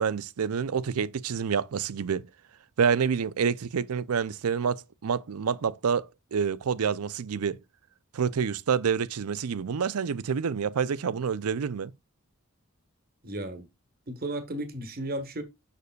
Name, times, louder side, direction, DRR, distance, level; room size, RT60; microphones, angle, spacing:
voice 1, 0.0-2.3 2.8-7.6 8.1-11.9, right 6 dB, 90° right, 0.5 m, -28 dB
voice 2, 13.2-13.7 14.1-15.4, right 1 dB, 45° right, 1.3 m, -34 dB
6.9 x 6.6 x 2.3 m
head